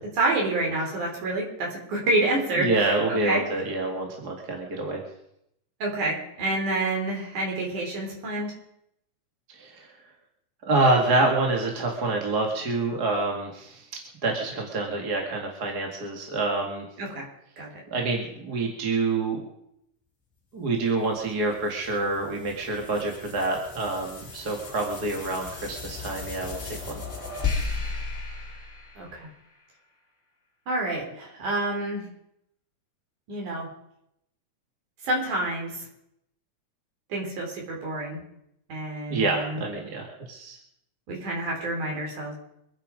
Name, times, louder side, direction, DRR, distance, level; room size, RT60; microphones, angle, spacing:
voice 1, 0.2-3.5 5.8-8.6 17.0-17.3 17.6-17.7 29.0-29.3 30.7-32.1 33.3-33.7 35.0-35.9 37.1-38.2 38.7-39.6 41.1-42.3, right 2 dB, 85° right, -2 dB, 5.2 m, -28 dB
voice 2, 2.6-5.0 9.5-9.9 10.6-13.8 14.2-16.9 17.9-19.4 20.5-26.6 26.9-27.0 39.1-40.6, right 2 dB, 35° right, 1 dB, 2.4 m, -27 dB
sound 1, 21.0-29.6, left 4 dB, 25° left, 3.0 m, -36 dB
25.0 x 9.2 x 5.2 m, 0.78 s
omnidirectional pair, 3.4 m